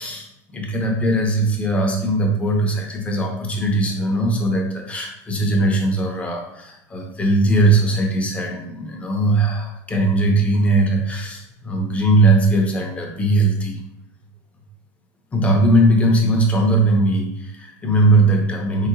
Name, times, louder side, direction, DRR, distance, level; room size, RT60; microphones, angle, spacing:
voice 1, 0.0-13.8 15.3-18.9, right 2 dB, 15° left, 1 dB, 0.6 m, -19 dB
3.4 x 2.8 x 2.6 m, 0.84 s
supercardioid pair, 135°, 9 cm